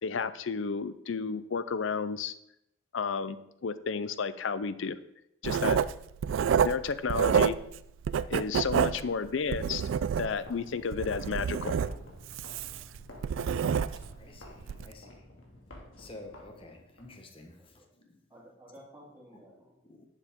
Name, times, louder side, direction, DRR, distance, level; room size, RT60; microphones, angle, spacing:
voice 1, 0.0-2.3 2.9-5.0 5.4-5.8 6.6-7.6 8.3-9.8 10.2-11.8, left 5 dB, 70° left, 14 dB, 0.5 m, -32 dB
Writing, 5.4-7.8 8.0-10.5 10.9-14.2 14.6-14.8, right 7 dB, 75° right, 0.3 m, -28 dB
voice 2, 8.7-9.2 17.6-17.8 18.3-19.8, equal, 15° right, -12 dB, 3.1 m, -53 dB
sound 1, 9.7-17.1, left 1 dB, 90° left, 2.2 m, -51 dB
voice 3, 14.2-15.3 16.0-18.2 19.8-20.1, left 2 dB, 25° left, 3 dB, 1.3 m, -50 dB
11.0 x 7.3 x 3.7 m, 0.79 s
head